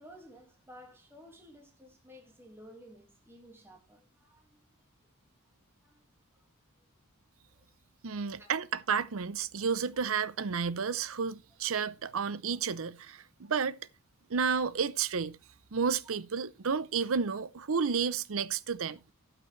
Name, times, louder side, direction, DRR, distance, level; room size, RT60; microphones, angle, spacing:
voice 1, 0.0-4.6 5.8-6.0 7.5-7.7 8.3-8.5, equal, 10° right, 1.9 m, -54 dB
voice 2, 8.0-13.8 14.3-15.4 15.7-19.0, right 6 dB, 65° right, 0.6 m, -31 dB
18.0 x 6.0 x 3.2 m
head